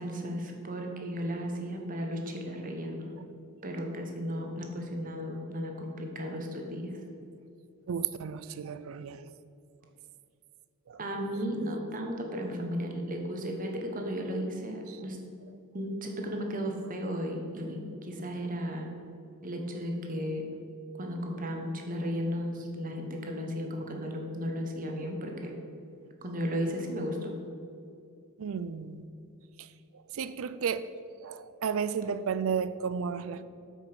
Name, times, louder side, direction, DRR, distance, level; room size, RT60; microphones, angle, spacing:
voice 1, 0.0-3.1 3.6-7.0 11.0-15.2 15.7-18.9 19.4-20.4 21.0-25.5 26.2-27.3, equal, 40° right, 2 dB, 1.2 m, -34 dB
voice 2, 7.9-9.3 10.9-11.0 14.9-15.0 28.4-29.1 29.6-29.7 29.9-30.8 31.2-33.5, right 6 dB, 65° right, 14 dB, 0.4 m, -33 dB
8.2 x 5.5 x 6.2 m, 2.6 s
head